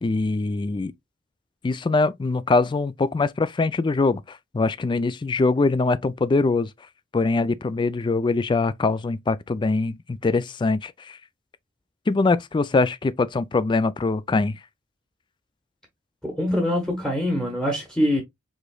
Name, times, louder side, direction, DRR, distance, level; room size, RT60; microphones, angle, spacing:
voice 1, 0.0-0.9 1.6-6.7 7.1-11.2 12.1-14.6, left 3 dB, 25° left, 0.3 m, -23 dB
voice 2, 16.2-18.2, left 1 dB, 5° left, 1.1 m, -24 dB
5.0 x 3.8 x 2.3 m
head